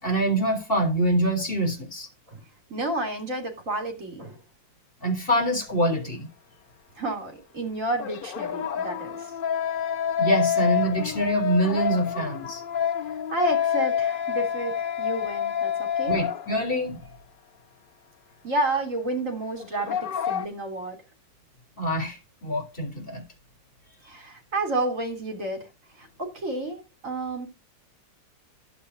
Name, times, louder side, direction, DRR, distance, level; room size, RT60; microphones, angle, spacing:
voice 1, 0.0-2.1 5.0-6.3 10.2-12.6 16.1-17.0 21.8-23.2, right 1 dB, 30° left, 3.9 m, -25 dB
voice 2, 2.7-4.4 7.0-9.3 13.3-16.2 18.4-21.0 24.1-25.7 26.0-27.5, right 2 dB, 45° right, 3.6 m, -30 dB
sound 1, 5.3-5.5 8.0-16.9 17.1-17.2 19.6-20.5, left 8 dB, 85° left, 0.4 m, -28 dB
11.5 x 8.3 x 2.8 m
omnidirectional pair, 2.0 m